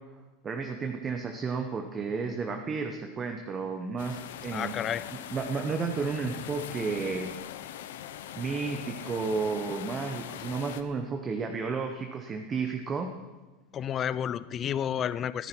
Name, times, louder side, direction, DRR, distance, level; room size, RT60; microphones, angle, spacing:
voice 1, 0.4-4.7 5.1-7.3 8.3-13.1, right 4 dB, 20° right, 4 dB, 0.9 m, -32 dB
sound 1, 4.0-10.8, left 11 dB, 85° left, 0.7 m, -41 dB
voice 2, 4.5-5.1 13.7-15.5, left 9 dB, 30° left, 17 dB, 0.4 m, -31 dB
14.0 x 11.0 x 4.5 m, 1.2 s
supercardioid pair, 145°, 0 cm